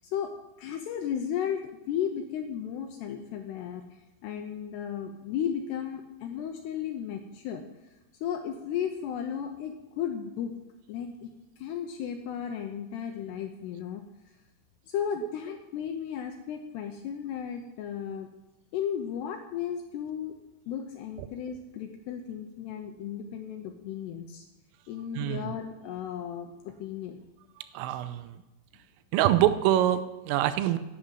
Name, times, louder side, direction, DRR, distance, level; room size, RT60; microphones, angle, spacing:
voice 1, 0.6-7.6 8.2-10.6 10.9-14.0 14.9-18.3 18.7-20.3 20.7-24.4 24.9-27.2, left 8 dB, 85° left, 4 dB, 2.3 m, -34 dB
voice 2, 25.2-25.5 27.7-28.4 29.1-30.8, right 12 dB, 85° right, 12 dB, 3.3 m, -25 dB
11.0 x 9.0 x 9.0 m, 1.0 s
omnidirectional pair, 5.9 m